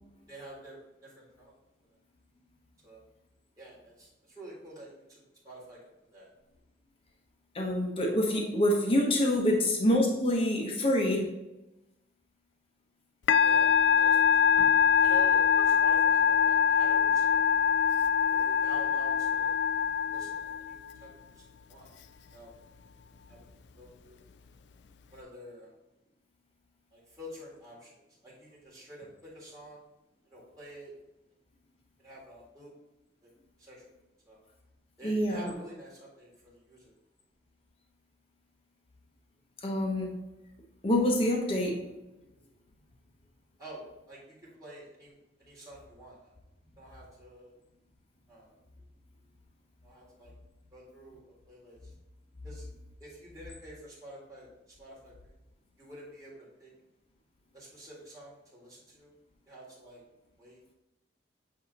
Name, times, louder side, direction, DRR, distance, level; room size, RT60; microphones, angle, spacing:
voice 1, 0.3-1.6 2.8-3.0 3.6-5.8 6.1-6.3 13.4-14.4 15.0-17.7 18.3-19.6 20.0-21.9 22.3-22.6 23.3-23.4 23.7-24.2 25.1-25.8 26.9-28.0 28.2-29.8 30.3-30.9 32.0-32.7 33.2-33.3 33.6-33.9 34.3-34.4 35.0-36.9 43.6-44.3 44.6-46.4 46.8-47.5 48.3-48.5 49.8-50.3 50.7-51.9 52.4-52.7 53.0-55.3 55.8-56.7 57.5-59.1 59.5-60.0 60.4-60.6, right 1 dB, 20° right, -6 dB, 1.9 m, -49 dB
voice 2, 7.5-11.3 35.0-35.5 39.6-40.1 40.8-41.8, left 1 dB, 30° left, 0 dB, 0.9 m, -26 dB
Musical instrument, 13.3-20.9, left 7 dB, 65° left, 0.3 m, -24 dB
8.3 x 2.9 x 4.0 m, 0.97 s
head